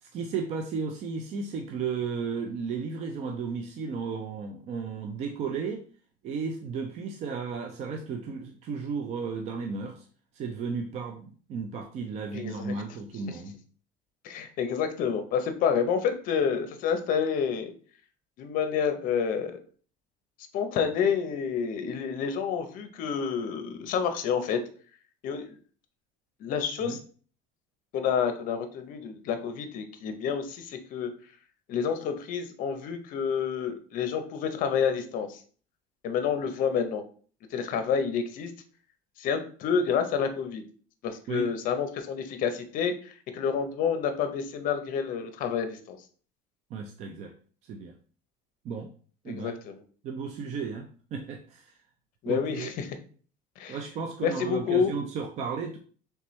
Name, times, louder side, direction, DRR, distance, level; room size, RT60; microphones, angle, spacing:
voice 1, 0.0-5.9 6.2-10.1 10.3-13.6 26.8-27.0 41.3-41.5 46.7-47.3 47.6-47.9 48.6-48.9 49.2-49.5 50.0-51.8 52.3-52.7 53.7-55.8, right 5 dB, 40° right, 4 dB, 0.4 m, -34 dB
voice 2, 12.3-12.7 14.2-17.7 18.4-19.6 20.5-24.6 25.2-25.5 26.4-27.0 27.9-31.1 31.7-35.4 36.0-37.0 37.5-38.5 39.2-40.6 41.0-46.0 49.3-49.8 52.2-52.9 53.6-53.8 54.2-54.9, left 7 dB, 50° left, 8 dB, 0.7 m, -29 dB
4.3 x 3.4 x 3.1 m, 0.43 s
cardioid pair, 165°, 18 cm